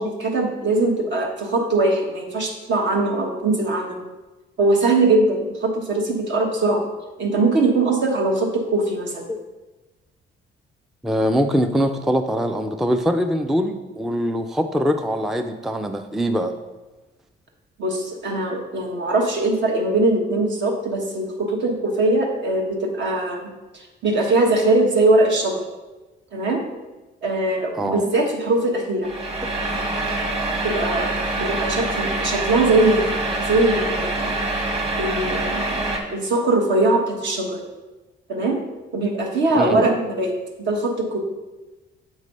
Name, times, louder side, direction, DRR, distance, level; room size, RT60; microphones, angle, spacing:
voice 1, 0.0-4.0 4.6-6.8 7.2-9.3 17.8-25.6 26.3-26.6 27.2-29.1 30.6-33.1 33.4-34.3 35.0-37.6 38.3-38.6 38.9-40.3 40.6-41.2, right 2 dB, 65° right, 1 dB, 1.4 m, -21 dB
voice 2, 11.0-16.5 27.7-28.0 39.5-39.9, equal, ahead, 7 dB, 0.4 m, -22 dB
sound 1, 29.0-36.0, right 2 dB, 30° right, 1.5 m, -25 dB
7.3 x 3.2 x 5.4 m, 1.1 s
cardioid pair, 90°, 20 cm